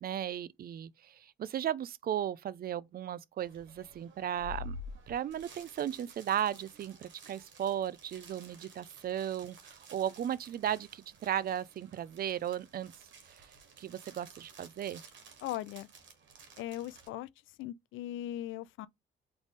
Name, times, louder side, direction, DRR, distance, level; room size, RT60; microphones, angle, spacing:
voice 1, 0.0-4.8 5.1-12.9 13.3-13.5 13.8-15.0, right 10 dB, 50° right, 0.4 m, -36 dB
sound 1, 3.4-17.1, left 1 dB, 70° right, 1.5 m, -51 dB
voice 2, 15.4-15.9 16.6-17.3 17.6-18.9, left 13 dB, 85° left, 0.4 m, -39 dB
4.0 x 3.3 x 3.3 m
cardioid pair, 90°, 20 cm